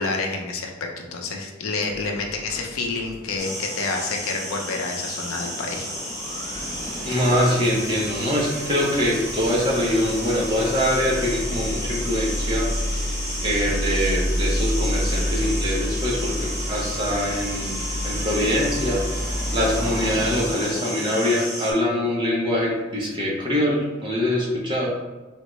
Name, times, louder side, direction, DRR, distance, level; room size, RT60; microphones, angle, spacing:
voice 1, 0.0-5.9, left 3 dB, 75° left, 1 dB, 0.5 m, -28 dB
sound 1, 1.8-3.6 3.9-4.1 4.4-4.5 4.7-20.5, equal, 65° right, 0.9 m, -30 dB
sound 2, 3.4-21.7, equal, 15° left, 0.8 m, -33 dB
voice 2, 7.1-12.7 13.4-16.3 16.7-17.8 18.0-19.0 19.5-24.9, left 1 dB, 20° right, -4 dB, 0.6 m, -23 dB
3.6 x 2.2 x 3.0 m, 1.2 s
head